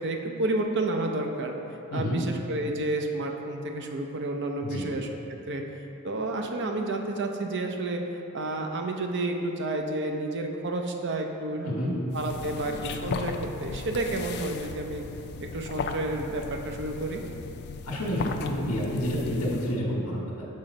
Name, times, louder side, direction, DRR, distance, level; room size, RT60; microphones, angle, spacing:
voice 1, 0.0-1.5 1.9-5.1 5.5-5.6 6.0-11.7 12.1-15.0 15.4-17.2, right 2 dB, 55° right, 3 dB, 0.6 m, -30 dB
voice 2, 4.6-4.9 11.6-11.9 17.8-20.4, equal, 85° left, -3 dB, 1.2 m, -29 dB
sound 1, 12.1-19.8, left 4 dB, 50° left, 0.3 m, -36 dB
7.4 x 3.9 x 5.2 m, 2.8 s
head